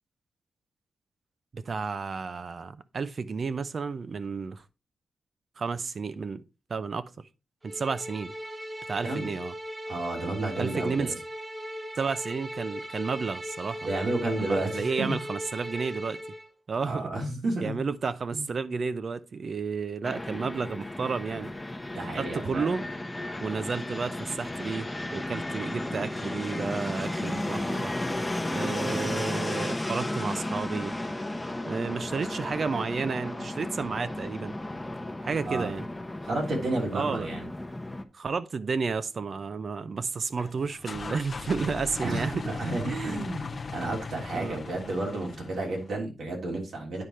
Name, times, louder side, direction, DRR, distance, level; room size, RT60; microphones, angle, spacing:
voice 1, 1.5-4.6 5.6-6.4 6.7-7.3 7.6-8.3 8.9-9.5 10.6-11.1 12.0-13.9 14.4-16.2 16.7-17.1 17.6-21.5 22.2-22.9 23.4-27.9 28.5-30.9 31.7-34.5 35.2-35.9 36.9-37.3 38.1-42.4 42.9-43.3 44.3-44.6, right 5 dB, 50° right, 0.6 m, -32 dB
sound 1, 7.6-16.5, equal, 15° right, 0.8 m, -38 dB
voice 2, 9.9-11.1 13.8-15.2 16.8-17.8 18.3-18.5 21.9-22.7 35.5-35.7 36.2-37.5 42.0-47.0, right 2 dB, 85° right, 3.1 m, -31 dB
Fixed-wing aircraft airplane, 20.0-38.0, left 1 dB, 10° left, 0.9 m, -34 dB
sound 2, 40.4-45.9, left 4 dB, 45° left, 0.6 m, -39 dB
9.5 x 4.9 x 4.3 m
wide cardioid pair, 115°, 0 cm